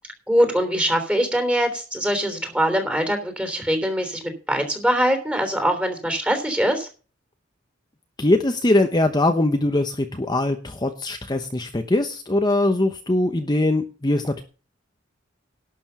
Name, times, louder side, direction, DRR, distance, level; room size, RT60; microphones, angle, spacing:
voice 1, 0.3-6.9, equal, 5° right, 6 dB, 3.3 m, -22 dB
voice 2, 8.2-14.4, left 2 dB, 20° left, 7 dB, 0.9 m, -21 dB
11.5 x 7.0 x 6.8 m, 0.35 s
head